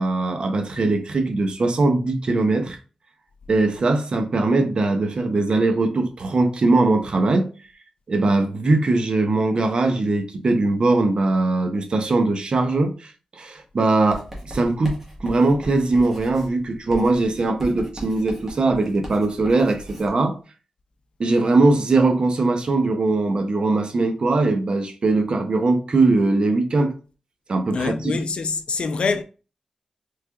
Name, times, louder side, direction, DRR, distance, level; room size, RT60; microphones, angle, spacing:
voice 1, 0.0-2.8 3.5-7.5 8.1-20.4 21.2-26.9 27.5-28.1, right 2 dB, 55° right, 0.6 m, -21 dB
Writing, 14.1-20.2, equal, 20° right, 1.2 m, -38 dB
voice 2, 27.7-29.2, left 4 dB, 60° left, 0.3 m, -25 dB
3.5 x 3.2 x 2.2 m
wide cardioid pair, 95°, 2 cm